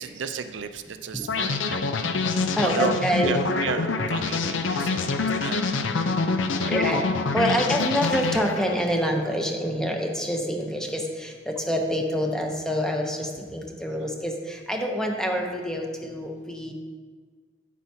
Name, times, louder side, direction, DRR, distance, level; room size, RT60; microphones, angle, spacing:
voice 1, 0.0-2.1 2.6-6.0 6.6-6.7, right 6 dB, 70° right, 9 dB, 0.4 m, -33 dB
sound 1, 1.3-9.0, left 4 dB, 80° left, 0.5 m, -26 dB
voice 2, 2.6-3.4 6.7-7.0 7.3-16.7, equal, 5° left, 2 dB, 0.8 m, -26 dB
9.1 x 8.1 x 2.8 m, 1.5 s
head